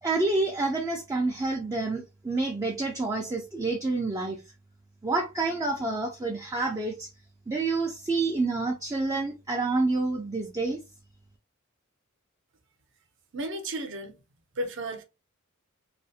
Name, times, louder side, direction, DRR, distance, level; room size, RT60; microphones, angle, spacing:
voice 1, 0.0-4.4 5.0-7.1 7.5-10.8, right 3 dB, 15° right, 0.3 m, -28 dB
voice 2, 13.3-14.2 14.6-15.0, right 1 dB, 60° right, 0.6 m, -33 dB
2.4 x 2.0 x 2.7 m
head